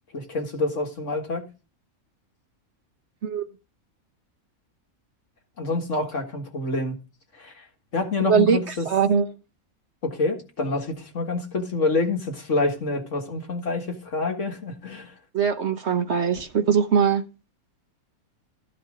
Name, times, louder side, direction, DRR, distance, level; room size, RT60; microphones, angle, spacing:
voice 1, 0.1-1.5 5.6-7.0 7.3-7.6 7.9-8.9 10.0-15.2, left 3 dB, 60° left, 2.0 m, -27 dB
voice 2, 8.3-9.3 15.3-17.2, right 7 dB, 55° right, 1.0 m, -21 dB
12.5 x 5.1 x 5.0 m
omnidirectional pair, 1.5 m